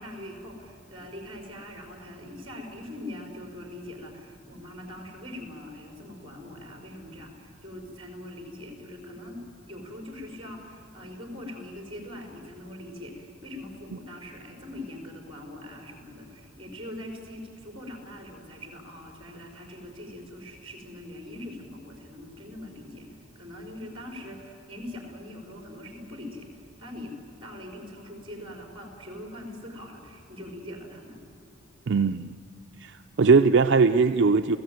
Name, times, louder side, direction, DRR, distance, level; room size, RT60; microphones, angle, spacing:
voice 1, 0.0-9.4 9.7-27.1 27.4-31.2, left 1 dB, 25° right, 2 dB, 4.5 m, -42 dB
voice 2, 31.9-32.4 32.8-34.6, right 4 dB, 60° right, 8 dB, 0.5 m, -20 dB
29.5 x 16.5 x 9.3 m, 2.9 s
head